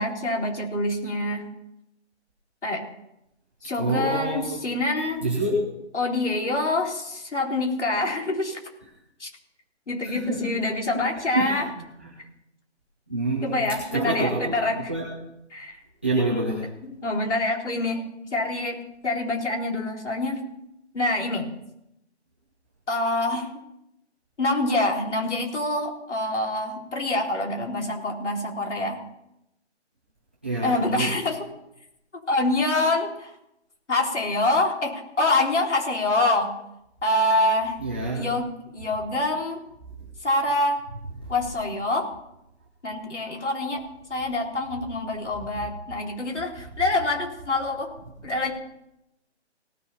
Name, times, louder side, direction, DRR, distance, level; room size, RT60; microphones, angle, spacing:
voice 1, 0.0-1.4 2.6-2.8 3.6-5.2 5.9-8.6 9.2-9.3 9.9-11.7 13.4-14.9 15.5-15.8 16.8-18.0 18.3-20.4 20.9-21.5 22.9-23.5 24.4-29.0 30.6-31.5 32.3-33.3 33.9-36.5 37.0-37.8 38.1-39.6 40.2-40.8 41.3-42.1 42.8-43.8 44.1-47.9 48.2-48.5, left 2 dB, 85° left, 0 dB, 3.8 m, -26 dB
voice 2, 3.8-4.6 5.2-5.6 10.0-10.5 10.9-11.0 11.3-12.1 13.1-15.1 16.0-16.6 30.4-31.1 37.8-38.3 41.2-41.3, right 2 dB, 10° right, -6 dB, 0.7 m, -27 dB
18.0 x 7.1 x 5.5 m, 0.84 s
hypercardioid pair, 175°, 34 cm